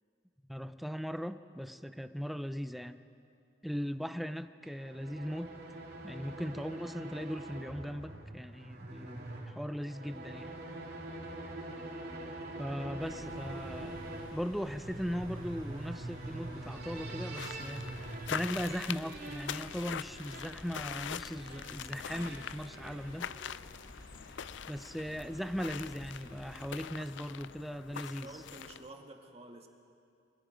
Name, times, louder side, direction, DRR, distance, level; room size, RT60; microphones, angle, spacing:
voice 1, 0.5-3.0 3.6-5.5 6.0-10.6 12.6-14.0 14.3-23.3 24.7-28.3, equal, ahead, 10 dB, 0.6 m, -39 dB
sound 1, 4.6-23.7, right 1 dB, 55° right, 2.9 m, -44 dB
sound 2, 13.0-26.8, equal, 25° left, 4.9 m, -54 dB
sound 3, 17.3-28.9, left 8 dB, 85° left, 0.4 m, -43 dB
voice 2, 28.2-29.7, right 2 dB, 35° right, 3 dB, 1.9 m, -50 dB
28.5 x 23.0 x 5.2 m, 2.5 s
head